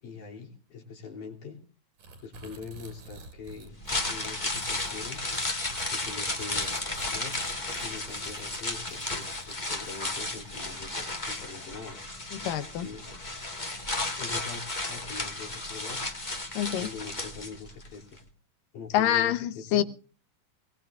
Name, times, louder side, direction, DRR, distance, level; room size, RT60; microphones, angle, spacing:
voice 1, 0.0-1.6 2.2-3.8 4.0-5.5 5.9-6.7 7.1-7.4 7.8-12.0 12.7-13.1 14.2-16.0 16.8-18.2 18.7-19.8, left 5 dB, 70° left, 1 dB, 4.6 m, -43 dB
sound 1, 2.0-10.5, right 3 dB, 90° right, 5.1 m, -49 dB
sound 2, 3.7-17.9 18.2-18.3, left 2 dB, 25° left, 1.0 m, -34 dB
voice 2, 12.3-12.9 16.6-16.9 18.9-19.8, left 11 dB, 85° left, 12 dB, 2.7 m, -26 dB
22.5 x 19.5 x 2.5 m, 0.38 s
omnidirectional pair, 3.8 m